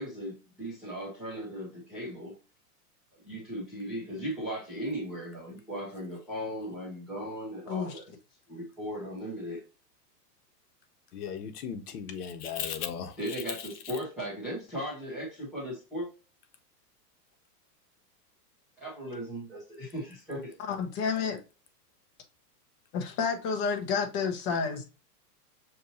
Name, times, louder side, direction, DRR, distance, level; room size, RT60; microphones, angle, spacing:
voice 1, 0.0-2.4 3.2-8.1 8.5-9.6 13.2-16.1 18.8-20.5, equal, ahead, 0.3 m, -37 dB
voice 2, 7.7-8.0 20.7-21.4 22.9-24.8, left 5 dB, 25° left, 0.8 m, -30 dB
voice 3, 11.1-13.1, left 8 dB, 70° left, 1.2 m, -36 dB
6.5 x 2.9 x 2.6 m
supercardioid pair, 155°, 48 cm